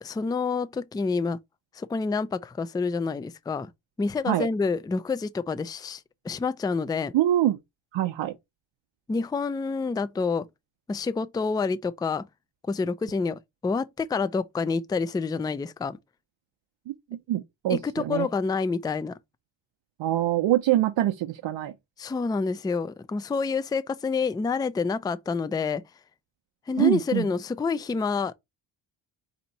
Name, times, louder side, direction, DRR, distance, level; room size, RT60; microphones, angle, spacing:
voice 1, 0.0-1.4 1.8-3.7 4.0-7.1 9.1-10.4 10.9-12.3 12.7-16.0 17.7-19.1 22.0-25.8 26.7-28.3, left 4 dB, 10° left, 0.3 m, -28 dB
voice 2, 7.1-7.6 7.9-8.4 16.9-18.3 20.0-21.7 26.8-27.3, right 13 dB, 75° right, 0.7 m, -24 dB
4.3 x 2.9 x 4.0 m
cardioid pair, 70°, 46 cm